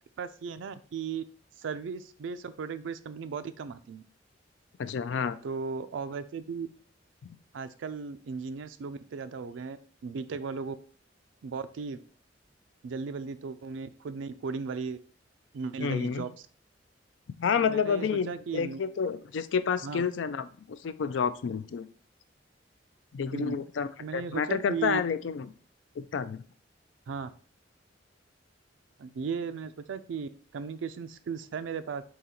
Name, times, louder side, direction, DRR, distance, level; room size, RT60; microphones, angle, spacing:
voice 1, 0.2-1.2 1.6-4.0 5.4-6.7 7.5-9.8 10.0-10.8 11.4-12.0 12.8-15.0 15.5-16.3 17.6-18.8 19.8-20.0 23.3-23.6 24.0-25.0 27.1-27.3 29.0-32.0, right 5 dB, 85° right, 11 dB, 0.4 m, -36 dB
voice 2, 4.8-5.4 15.8-16.2 17.4-21.9 23.1-25.5 26.0-26.4, left 6 dB, 70° left, 13 dB, 0.4 m, -29 dB
3.9 x 2.9 x 4.2 m, 0.43 s
head